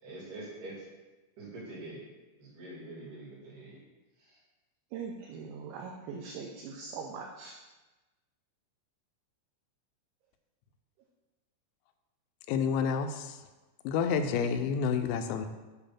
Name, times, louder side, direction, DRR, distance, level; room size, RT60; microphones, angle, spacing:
voice 1, 0.0-0.7 1.4-2.0 2.4-3.8 4.3-4.4, right 2 dB, 55° right, -7 dB, 4.2 m, -44 dB
voice 2, 4.9-7.6, right 5 dB, 85° right, 1 dB, 2.7 m, -41 dB
voice 3, 12.5-13.4 13.9-15.5, left 6 dB, 85° left, 7 dB, 3.2 m, -29 dB
10.0 x 3.5 x 5.6 m, 1.2 s
omnidirectional pair, 6.0 m